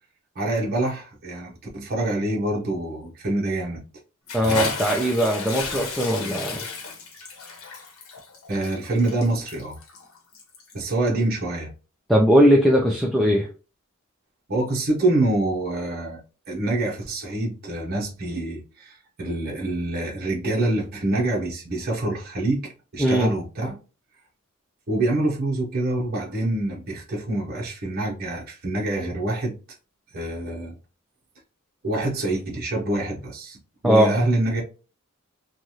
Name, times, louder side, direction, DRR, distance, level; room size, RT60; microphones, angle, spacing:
voice 1, 0.4-3.8 8.5-9.8 10.7-11.7 14.5-16.2 16.5-23.8 24.9-29.6 30.1-30.8 31.8-33.6 33.8-34.6, right 2 dB, 45° right, 0.8 m, -26 dB
Bathtub (filling or washing) / Splash splatter, 4.3-10.8, left 4 dB, 85° left, 1.0 m, -33 dB
voice 2, 4.3-6.6 12.1-13.5 23.0-23.3 33.8-34.1, equal, ahead, 0.4 m, -19 dB
3.1 x 2.4 x 2.7 m
head